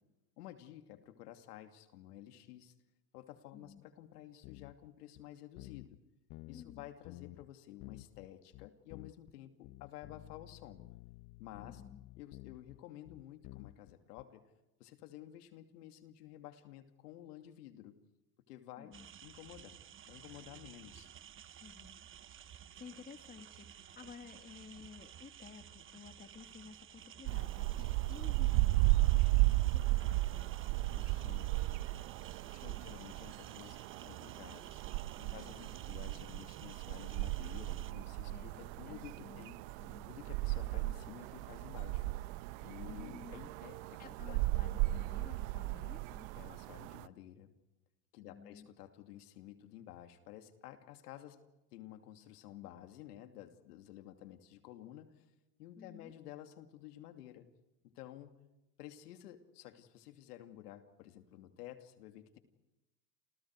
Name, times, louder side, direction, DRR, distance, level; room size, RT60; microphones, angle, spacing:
voice 1, 0.4-2.7 3.1-6.0 6.5-10.8 11.4-11.8 12.2-14.4 14.8-17.9 18.5-18.9 19.2-19.8 20.1-21.1 30.9-31.6 32.4-34.8 35.3-39.6 40.1-42.1 42.6-44.4 46.4-47.5 48.1-51.4 51.7-55.2 55.6-57.5 57.8-58.3 58.8-62.4, left 12 dB, 75° left, 7 dB, 2.8 m, -52 dB
voice 2, 3.5-3.8 6.5-6.9 11.6-12.0 18.8-19.1 21.6-22.0 22.4-30.7 32.9-33.2 35.2-35.6 38.3-38.6 38.9-39.4 39.8-40.1 42.8-43.4 44.0-46.3 48.2-48.7 55.8-56.1, left 6 dB, 20° left, 8 dB, 1.9 m, -54 dB
sound 1, 4.4-4.9 5.2-5.3 5.6-6.0 6.3-7.5 7.8-9.3 9.6-14.2, left 19 dB, 45° left, 1.0 m, -52 dB
sound 2, 18.9-37.9, right 9 dB, 25° right, 1.2 m, -54 dB
sound 3, 27.3-47.1, right 19 dB, 55° right, 1.0 m, -35 dB
30.0 x 28.5 x 4.8 m, 0.98 s
supercardioid pair, 115°, 47 cm